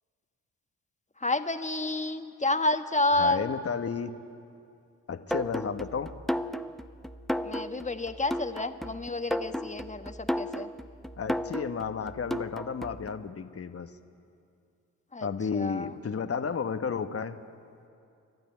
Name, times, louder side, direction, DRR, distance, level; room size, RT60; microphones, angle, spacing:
voice 1, 1.2-3.5 7.4-10.7 15.1-15.3 15.5-15.9, left 2 dB, 15° left, 8 dB, 1.4 m, -29 dB
voice 2, 3.2-4.2 5.1-6.1 11.2-13.9 15.2-17.4, left 6 dB, 35° left, 9 dB, 1.2 m, -32 dB
sound 1, 5.3-13.1, equal, ahead, 0.8 m, -34 dB
29.0 x 12.0 x 9.6 m, 2.5 s
hypercardioid pair, 45°, 43 cm